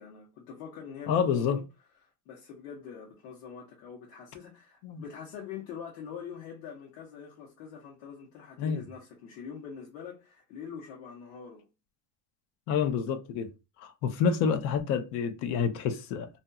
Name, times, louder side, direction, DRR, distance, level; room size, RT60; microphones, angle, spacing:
voice 1, 0.0-1.6 2.0-11.7, left 7 dB, 85° left, 1.1 m, -44 dB
voice 2, 1.1-1.6 4.8-5.0 8.6-8.8 12.7-13.5 13.8-16.3, left 6 dB, 55° left, 0.7 m, -28 dB
2.7 x 2.6 x 2.2 m
cardioid pair, 145°, 48 cm